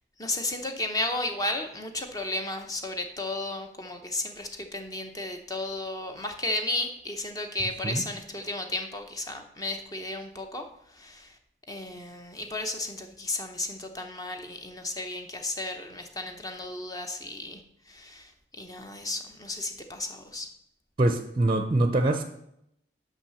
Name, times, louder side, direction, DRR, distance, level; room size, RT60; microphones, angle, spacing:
voice 1, 0.2-10.6 10.9-11.4 11.7-17.6 17.9-20.5, left 2 dB, 20° left, 5 dB, 0.7 m, -34 dB
voice 2, 21.0-22.2, right 2 dB, 30° right, 7 dB, 0.5 m, -24 dB
5.8 x 5.7 x 6.9 m, 0.78 s
head